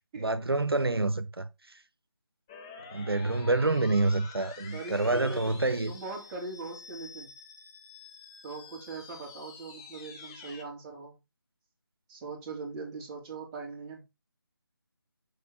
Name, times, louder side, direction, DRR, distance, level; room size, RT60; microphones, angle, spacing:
voice 1, 0.2-1.8 2.9-5.9, right 2 dB, 80° right, 0.9 m, -27 dB
sound 1, 2.5-10.6, left 5 dB, 10° left, 0.6 m, -48 dB
voice 2, 4.7-5.6 5.9-7.3 8.4-11.2 12.1-14.0, right 3 dB, 15° right, 2.6 m, -41 dB
6.7 x 4.4 x 6.3 m
figure-of-eight pair, 160°, 13 cm